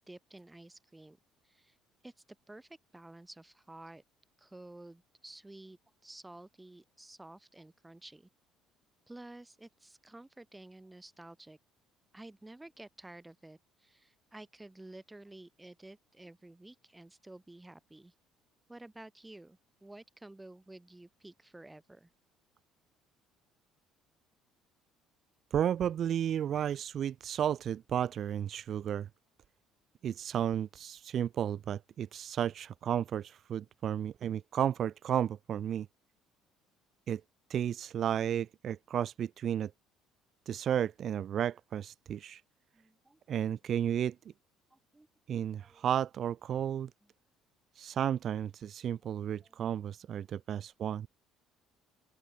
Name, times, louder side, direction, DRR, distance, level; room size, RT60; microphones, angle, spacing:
voice 1, 0.1-1.2 1.4-1.8 2.0-2.1 2.5-4.0 4.4-8.3 9.1-11.6 12.1-18.1 18.7-22.1 42.7-43.2 44.7-45.1 45.6-45.8 49.0-49.1 49.4-49.6, right 2 dB, 10° right, 2.5 m, -52 dB
voice 2, 25.5-29.1 30.0-35.9 37.1-37.2 37.5-39.7 40.5-42.4 43.3-44.1 45.3-46.9 47.8-51.1, right 9 dB, 45° right, 0.6 m, -33 dB
open air
cardioid pair, 125°, 0 cm